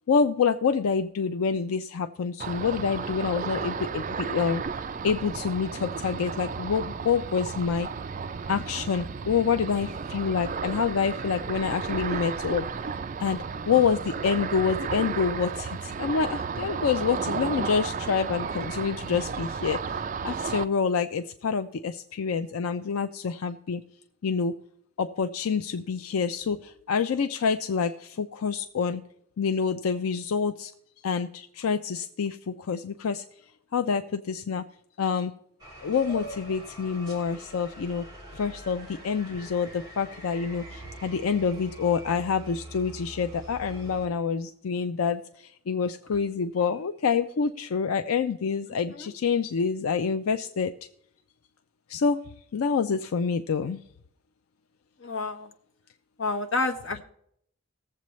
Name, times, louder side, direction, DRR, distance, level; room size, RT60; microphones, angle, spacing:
voice 1, 0.1-4.6 5.0-7.9 8.5-12.7 13.2-23.8 24.2-24.5 25.0-29.0 29.4-30.7 31.0-33.2 33.7-34.6 35.0-35.3 35.8-38.1 38.3-50.7 51.9-52.2 52.5-53.8, left 6 dB, 85° left, 8 dB, 0.4 m, -27 dB
Ocean, 2.4-20.6, right 5 dB, 35° right, 0.4 m, -33 dB
sound 1, 35.6-44.1, right 1 dB, 20° right, 3.3 m, -44 dB
voice 2, 55.0-55.5 56.2-57.0, left 3 dB, 65° left, 4 dB, 1.1 m, -28 dB
19.0 x 7.5 x 3.1 m, 0.70 s
head